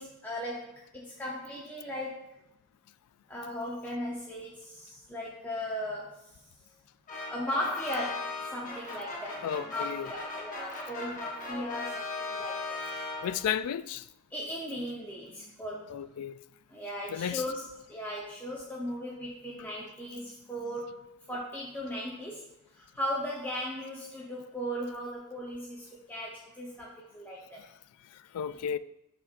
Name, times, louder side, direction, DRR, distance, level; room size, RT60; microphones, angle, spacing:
voice 1, 0.0-2.2 3.3-6.1 7.3-12.8 14.3-15.9 16.7-21.0 21.3-22.4 22.8-27.6, equal, 10° left, 0.7 m, -37 dB
sound 1, 7.1-13.6, left 3 dB, 35° left, 1.2 m, -38 dB
voice 2, 9.4-10.1 13.2-14.1 15.9-16.3 17.1-17.4 28.3-28.8, left 9 dB, 85° left, 0.3 m, -33 dB
11.0 x 4.2 x 2.5 m
head